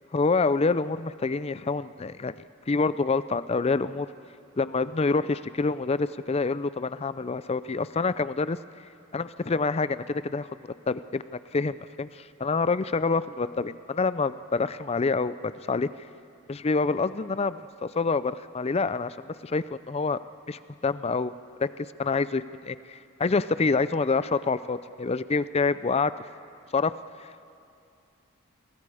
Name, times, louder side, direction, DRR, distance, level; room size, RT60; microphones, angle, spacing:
voice 1, 0.1-2.3 2.7-4.1 4.6-8.6 9.1-10.5 10.9-11.2 11.5-15.9 16.5-20.2 20.5-21.3 21.6-21.7 22.0-26.1 26.7-26.9, left 4 dB, 30° left, 15 dB, 0.4 m, -27 dB
29.5 x 22.5 x 4.9 m, 2.5 s
head